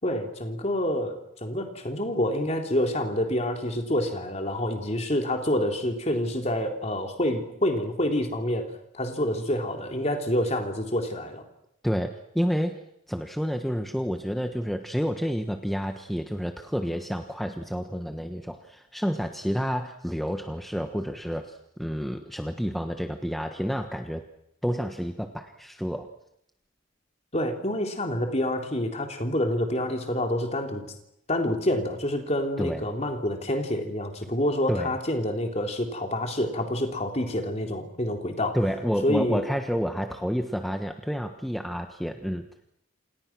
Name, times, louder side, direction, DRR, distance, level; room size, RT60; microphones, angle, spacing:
voice 1, 0.0-11.4 27.3-30.8 31.3-38.6 39.0-39.4, left 1 dB, 35° left, 4 dB, 3.7 m, -27 dB
voice 2, 12.3-12.8 13.1-24.3 24.6-26.1 32.6-32.8 34.7-34.9 38.5-42.4, equal, ahead, 5 dB, 1.3 m, -29 dB
28.5 x 28.0 x 6.2 m, 0.77 s
head